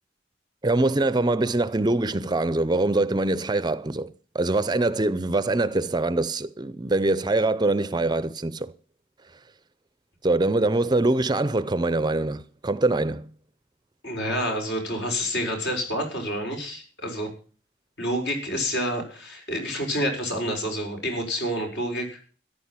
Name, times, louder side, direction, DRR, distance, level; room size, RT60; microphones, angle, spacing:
voice 1, 0.6-8.7 10.2-13.3, right 2 dB, 25° right, 0.6 m, -24 dB
voice 2, 14.0-17.3 18.0-22.1, equal, 65° left, 6.1 m, -28 dB
14.0 x 11.0 x 5.8 m
head